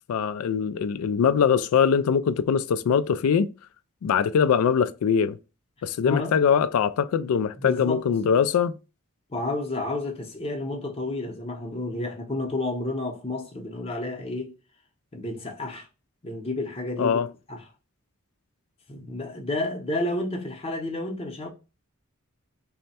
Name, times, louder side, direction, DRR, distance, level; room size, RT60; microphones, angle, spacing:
voice 1, 0.1-3.5 4.0-5.4 5.8-8.7 17.0-17.3, left 7 dB, 80° left, 0.3 m, -22 dB
voice 2, 6.0-6.4 7.6-8.0 9.3-14.5 15.1-15.9 16.2-17.2 17.5-17.7 18.9-21.5, left 2 dB, 25° left, 0.7 m, -30 dB
3.2 x 2.1 x 4.1 m
head